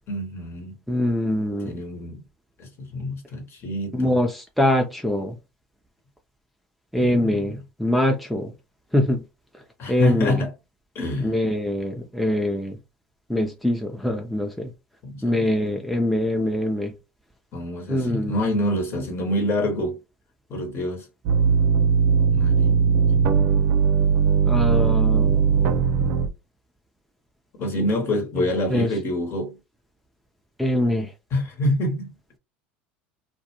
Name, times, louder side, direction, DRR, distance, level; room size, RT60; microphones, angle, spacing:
voice 1, 0.1-0.8 1.6-2.2 2.6-4.2 7.0-7.6 9.8-10.5 10.9-11.4 15.0-15.5 17.5-20.0 20.5-21.1 22.3-23.3 27.6-29.6 31.3-32.1, left 1 dB, 45° left, 1.1 m, -27 dB
voice 2, 0.9-1.7 3.9-5.3 6.9-8.5 8.9-9.2 9.9-10.4 11.2-12.8 13.3-14.7 15.2-16.9 17.9-18.4 24.5-25.8 28.7-28.9 30.6-31.1, left 1 dB, ahead, 0.5 m, -23 dB
sound 1, 21.2-26.3, right 6 dB, 60° right, 0.5 m, -19 dB
2.3 x 2.2 x 2.9 m
hypercardioid pair, 80°, 6 cm